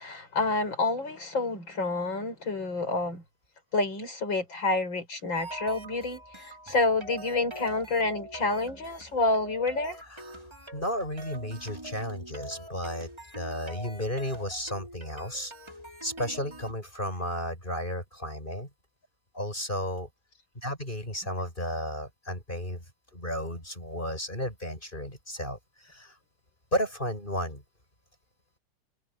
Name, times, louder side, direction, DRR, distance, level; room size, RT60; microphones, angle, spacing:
voice 1, 0.0-3.2 3.7-10.0, left 3 dB, 60° left, 6.3 m, -28 dB
sound 1, 5.3-16.7, right 1 dB, 10° right, 4.8 m, -44 dB
voice 2, 10.1-13.1 13.3-15.5 16.0-18.7 19.3-20.1 20.5-22.8 23.1-26.2 26.7-27.6, equal, 20° left, 7.7 m, -33 dB
omnidirectional pair, 2.3 m